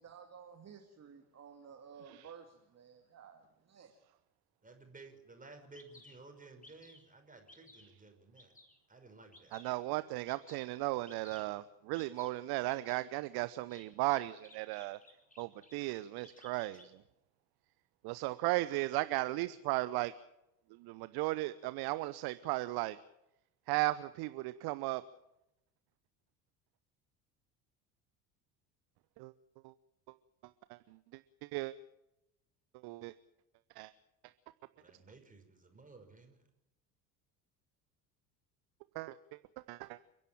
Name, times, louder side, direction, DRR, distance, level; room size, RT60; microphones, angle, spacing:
voice 1, 0.0-3.9, right 7 dB, 30° right, 4 dB, 2.3 m, -54 dB
voice 2, 4.6-8.5 8.9-9.6 34.8-36.4, right 3 dB, 15° right, 5 dB, 5.6 m, -56 dB
Bird vocalization bird call bird song, 5.3-5.4 5.7-6.1 6.6-7.1 7.5-7.9 8.4-8.8 9.3-9.7 10.3-10.6 11.1-11.4 11.9-12.3 12.7-13.0 13.7-15.7 16.1-16.9, left 2 dB, 15° left, 4.9 m, -58 dB
voice 3, 9.5-15.0 15.4-17.0 18.0-20.1 20.8-23.0 23.7-25.0 29.2-29.3 29.6-29.7 30.7-30.8 31.4-31.7 32.8-33.1 33.8-33.9 38.9-39.2 39.7-40.0, right 19 dB, 50° right, 15 dB, 0.9 m, -36 dB
30.0 x 11.0 x 8.9 m, 0.87 s
figure-of-eight pair, 65°, 49 cm